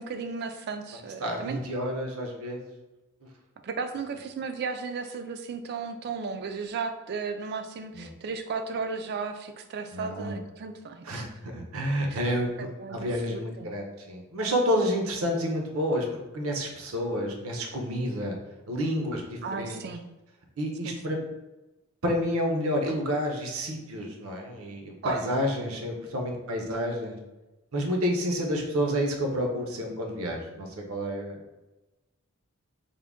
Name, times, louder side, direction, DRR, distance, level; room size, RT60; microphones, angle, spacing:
voice 1, 0.0-1.6 3.6-11.3 12.1-12.2 12.6-13.7 19.4-20.0 20.8-21.0 25.0-25.2, right 5 dB, 45° right, 7 dB, 0.3 m, -35 dB
voice 2, 0.9-2.6 7.9-8.1 9.9-10.4 11.0-16.1 16.3-18.3 18.7-19.8 20.6-21.2 22.0-27.2 27.7-31.6, equal, 70° right, 2 dB, 0.7 m, -29 dB
3.6 x 2.1 x 3.5 m, 1.1 s
head